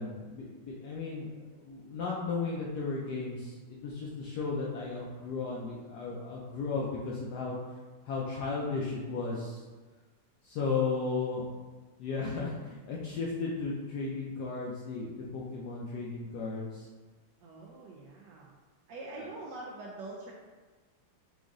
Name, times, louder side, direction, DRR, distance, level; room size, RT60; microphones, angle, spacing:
voice 1, 0.0-7.6 8.0-9.6 10.4-11.5 12.0-16.9, left 4 dB, 85° left, -4 dB, 0.8 m, -35 dB
voice 2, 17.4-18.5 18.9-20.3, right 2 dB, 75° right, -2 dB, 1.0 m, -44 dB
5.0 x 2.4 x 3.7 m, 1.3 s
omnidirectional pair, 2.4 m